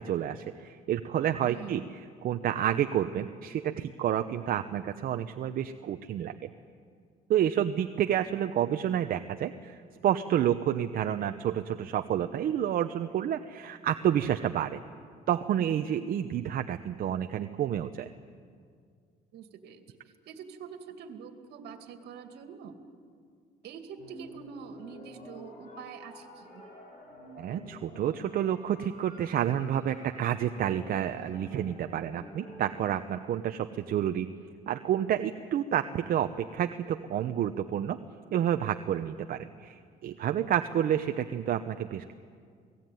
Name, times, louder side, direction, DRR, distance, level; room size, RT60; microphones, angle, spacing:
voice 1, 0.0-6.5 7.3-14.8 15.3-18.1 27.4-34.3 34.7-38.0 38.3-42.1, right 10 dB, 60° right, 8 dB, 0.9 m, -29 dB
voice 2, 1.5-1.9 19.3-19.8 20.3-22.8 23.6-26.6, right 7 dB, 75° right, 7 dB, 2.5 m, -45 dB
sound 1, 24.0-32.9, left 1 dB, 50° left, 7.1 m, -49 dB
28.5 x 18.5 x 9.4 m, 2.1 s
cardioid pair, 110°, 17 cm